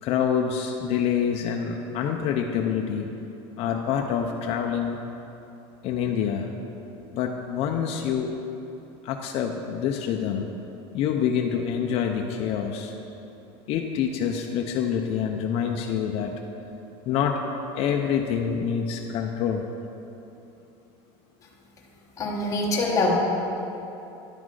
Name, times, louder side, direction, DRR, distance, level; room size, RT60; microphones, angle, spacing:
voice 1, 0.0-3.1 3.6-5.0 5.8-6.5 7.1-8.3 9.0-10.5 10.9-12.9 13.7-16.3 17.1-17.4 17.8-19.7, left 8 dB, 50° left, 2 dB, 0.5 m, -26 dB
voice 2, 22.2-23.1, left 2 dB, 25° left, -3 dB, 1.0 m, -24 dB
10.5 x 3.9 x 4.7 m, 2.9 s
supercardioid pair, 140°, 13 cm